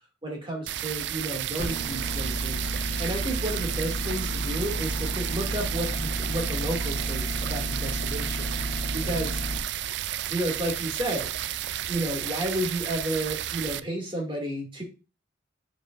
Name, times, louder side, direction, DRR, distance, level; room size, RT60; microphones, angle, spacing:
voice 1, 0.2-2.6 3.0-8.5 8.9-9.4 10.3-11.5 11.9-14.8, right 1 dB, 25° right, 0 dB, 2.4 m, -32 dB
sound 1, 0.7-13.8, right 12 dB, 60° right, 0.4 m, -32 dB
sound 2, 1.6-9.6, equal, 30° left, 1.6 m, -32 dB
10.0 x 5.2 x 2.6 m, 0.31 s
head